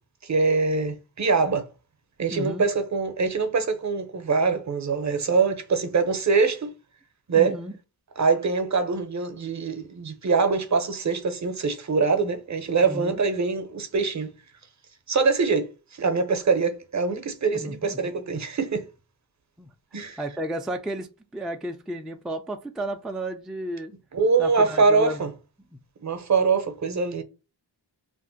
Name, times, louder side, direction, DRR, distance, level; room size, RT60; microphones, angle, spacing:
voice 1, 0.2-1.6 2.2-6.7 7.3-7.6 8.2-14.3 15.1-18.8 19.9-20.2 24.1-25.3 26.0-27.2, right 4 dB, 40° right, 0.7 m, -23 dB
voice 2, 2.3-2.7 7.3-7.7 12.8-13.2 17.5-18.2 19.6-19.7 20.2-21.1 21.3-23.9 24.4-25.2, right 1 dB, ahead, 0.3 m, -33 dB
2.6 x 2.1 x 3.8 m
cardioid pair, 55°, 46 cm